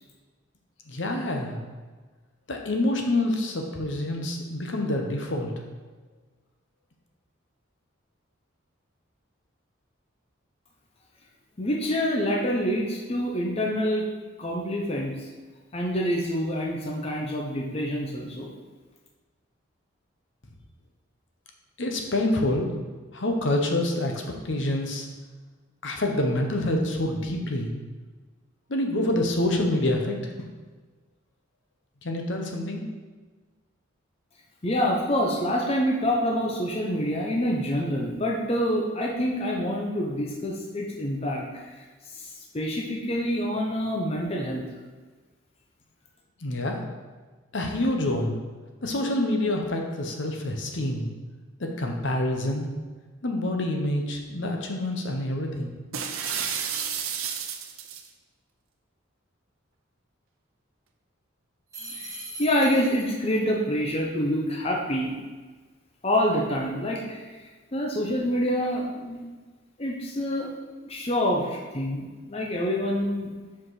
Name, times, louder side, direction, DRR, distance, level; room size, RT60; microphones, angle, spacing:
voice 1, 0.9-1.6 2.5-5.5 21.8-22.7 23.1-25.1 25.8-27.7 28.7-30.3 32.0-32.8 46.4-46.8 47.5-48.3 48.8-51.1 51.6-52.7 53.2-55.7, left 1 dB, 60° left, 2 dB, 0.9 m, -27 dB
voice 2, 11.6-14.1 14.4-15.3 15.7-18.5 34.6-41.8 42.1-42.3 42.5-44.6 61.8-65.2 66.0-69.2 69.8-70.5 70.8-73.3, equal, 30° left, -1 dB, 0.7 m, -27 dB
sound 1, 55.9-58.1, right 7 dB, 85° right, 0.6 m, -31 dB
sound 2, 61.7-63.4, right 2 dB, 15° right, 1.9 m, -40 dB
5.9 x 5.0 x 4.8 m, 1.4 s
head